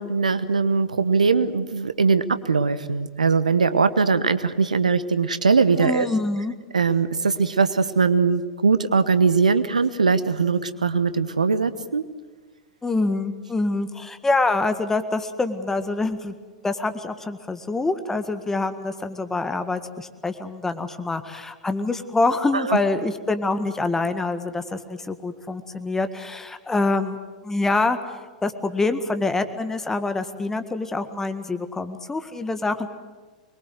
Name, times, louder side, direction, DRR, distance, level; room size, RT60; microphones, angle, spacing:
voice 1, 0.0-6.1 6.7-12.0 22.5-22.8, right 4 dB, 80° right, 13 dB, 1.1 m, -21 dB
voice 2, 5.8-6.5 12.8-16.3 16.6-27.2 27.4-28.0 28.4-32.9, left 3 dB, 10° left, 9 dB, 1.8 m, -25 dB
24.5 x 22.0 x 8.0 m, 1.3 s
figure-of-eight pair, 95°, 4 cm